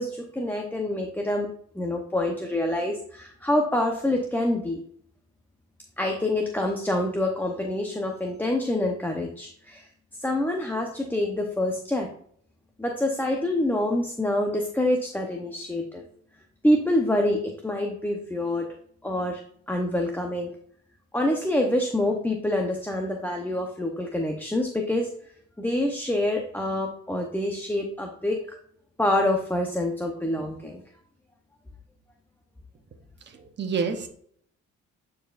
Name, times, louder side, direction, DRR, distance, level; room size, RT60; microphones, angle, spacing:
voice 1, 0.0-1.5 1.7-4.8 6.0-9.9 10.2-12.1 12.8-16.0 16.6-18.7 19.0-19.4 19.7-20.6 21.1-25.1 25.6-28.4 29.0-30.8, left 1 dB, 5° left, 2 dB, 0.8 m, -26 dB
voice 2, 33.3-34.1, right 5 dB, 35° right, 3 dB, 1.0 m, -29 dB
8.9 x 4.6 x 2.5 m, 0.62 s
cardioid pair, 90°, 30 cm